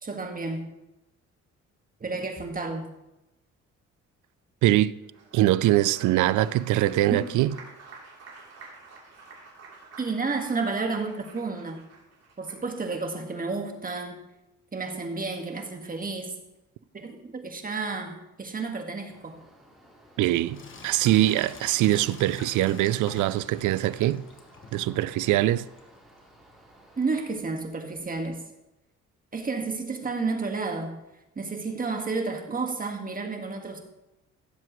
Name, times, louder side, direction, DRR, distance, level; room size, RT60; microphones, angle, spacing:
voice 1, 0.0-0.7 2.0-2.9 10.0-11.8 12.4-14.2 14.7-16.3 16.9-19.4 27.0-28.4 29.3-31.0 31.4-33.8, right 4 dB, 30° right, 1.7 m, -31 dB
voice 2, 4.6-4.9 5.3-7.5 20.2-24.2 24.7-25.7, right 15 dB, 80° right, 0.5 m, -23 dB
Applause, 5.0-12.8, right 4 dB, 55° right, 3.3 m, -49 dB
sound 1, 19.1-27.2, right 1 dB, ahead, 3.7 m, -54 dB
Sink (filling or washing), 20.4-28.3, left 4 dB, 40° left, 1.3 m, -50 dB
16.0 x 7.5 x 3.1 m
cardioid pair, 90°, 30 cm